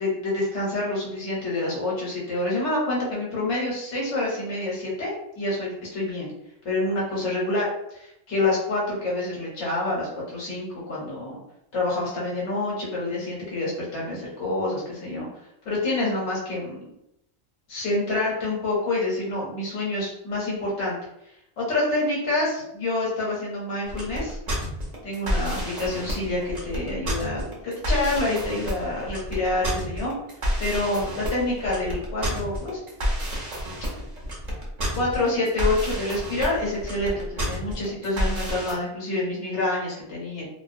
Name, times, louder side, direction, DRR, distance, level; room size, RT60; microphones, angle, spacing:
voice 1, 0.0-6.3 6.6-7.7 7.9-11.4 11.7-15.3 15.6-16.9 17.7-21.0 21.6-24.4 25.0-30.1 30.6-32.8 34.9-40.5, left 2 dB, 80° left, -5 dB, 1.1 m, -27 dB
sound 1, 23.8-38.7, equal, 45° right, 0.7 m, -29 dB
2.5 x 2.0 x 2.5 m, 0.79 s
omnidirectional pair, 1.1 m